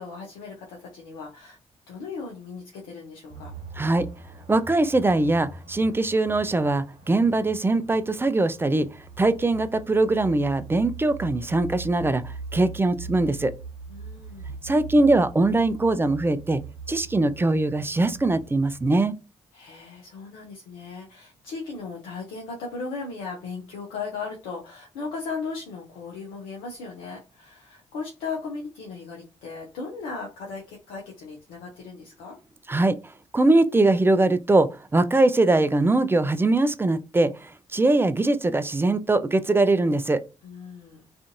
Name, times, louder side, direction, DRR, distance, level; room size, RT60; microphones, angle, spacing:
voice 1, 0.0-1.6 1.9-3.5 13.9-14.4 19.5-32.4 40.4-41.1, left 4 dB, 80° left, 0.6 m, -37 dB
sound 1, 3.3-19.0, right 4 dB, 55° right, 1.0 m, -41 dB
voice 2, 3.8-4.1 4.5-8.9 9.2-13.5 14.6-16.6 16.9-19.1 32.7-33.0 33.3-40.2, right 2 dB, 15° right, 0.4 m, -22 dB
2.5 x 2.5 x 2.5 m
hypercardioid pair, 45°, 14 cm